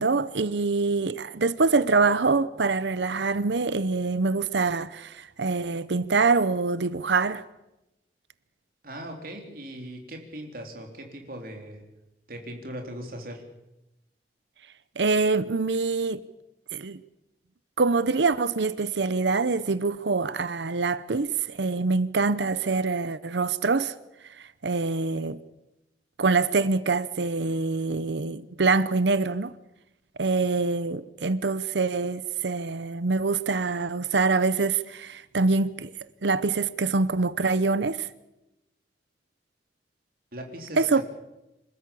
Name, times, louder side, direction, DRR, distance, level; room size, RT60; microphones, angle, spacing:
voice 1, 0.0-7.4 15.0-16.2 16.7-17.0 17.8-23.9 24.4-25.4 26.2-29.5 30.2-35.9 36.2-38.1 40.8-41.0, right 3 dB, 80° right, 0.8 m, -25 dB
voice 2, 8.8-11.8 12.3-13.4 40.3-41.0, right 1 dB, 55° right, 3.7 m, -39 dB
27.0 x 13.5 x 8.5 m
head